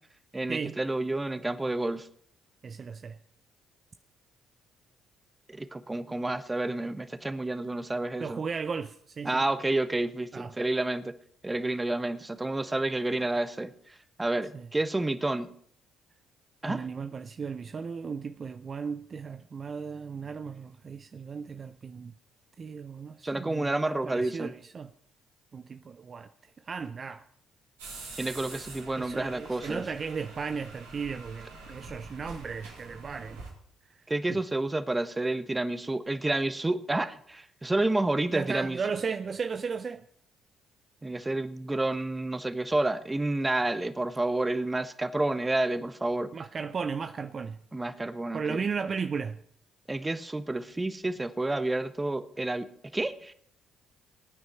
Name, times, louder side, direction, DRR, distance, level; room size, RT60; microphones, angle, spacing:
voice 1, 0.3-2.1 5.5-8.4 9.2-11.1 11.4-13.7 14.2-15.5 16.6-16.8 23.2-24.5 28.2-29.8 34.1-38.8 41.0-46.3 47.7-48.6 49.9-52.7 52.9-53.3, right 2 dB, 20° right, 1.2 m, -29 dB
voice 2, 2.6-3.2 8.2-9.5 10.3-10.5 14.5-14.7 16.6-22.1 22.6-24.9 25.5-27.2 29.0-33.4 33.9-34.0 34.3-34.4 38.3-40.0 46.3-47.6 48.3-49.4, right 5 dB, 45° right, 0.6 m, -35 dB
sound 1, 27.8-33.5, right 3 dB, 90° right, 4.1 m, -46 dB
20.5 x 9.5 x 4.4 m
hypercardioid pair, 50°, 0 cm